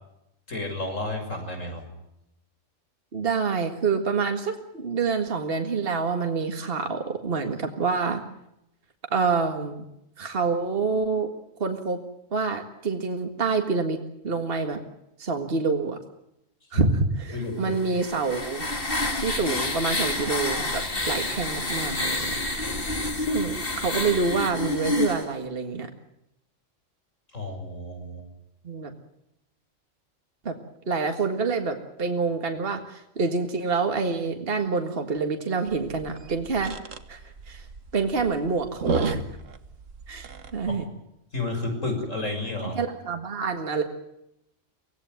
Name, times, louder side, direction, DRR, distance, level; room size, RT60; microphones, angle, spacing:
voice 1, 0.5-1.8 16.7-16.8 17.3-17.8 27.3-28.2 40.7-40.8 41.3-42.8, left 2 dB, 85° left, 4 dB, 6.8 m, -31 dB
voice 2, 3.1-8.2 9.1-9.8 10.2-11.3 11.6-12.0 12.3-14.0 14.2-14.8 15.2-16.0 16.7-18.7 19.2-22.4 23.2-25.9 28.6-28.9 30.5-30.6 30.9-36.8 37.1-37.7 37.9-39.2 40.1-40.8 42.8-43.8, right 4 dB, 50° right, 5 dB, 2.0 m, -27 dB
sound 1, 17.7-25.3, left 2 dB, 45° left, 3.1 m, -28 dB
sound 2, 35.7-40.8, right 4 dB, 90° right, 1.8 m, -33 dB
24.5 x 18.0 x 9.3 m, 0.83 s
omnidirectional pair, 1.3 m